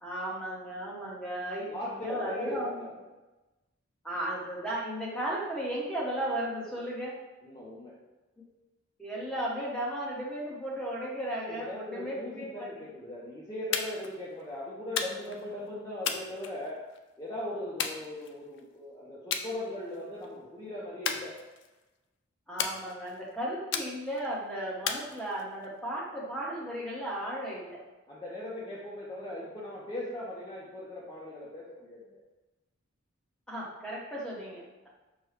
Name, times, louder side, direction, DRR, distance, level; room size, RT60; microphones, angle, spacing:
voice 1, 0.0-2.7 4.0-7.2 8.4-8.5 9.0-12.7 22.5-27.8 33.5-34.9, right 1 dB, 5° left, -6 dB, 1.0 m, -35 dB
voice 2, 1.7-3.1 7.4-7.9 11.4-16.8 17.2-21.4 28.1-32.2, left 1 dB, 20° left, -7 dB, 0.6 m, -39 dB
sound 1, 13.7-14.1 15.0-15.4 16.0-17.0 17.8-18.6 19.3-19.5 19.9-20.3 21.0-21.8 22.6-23.2 23.7-24.3 24.9-25.7, left 7 dB, 60° left, 0.4 m, -34 dB
6.4 x 2.2 x 3.2 m, 1.1 s
head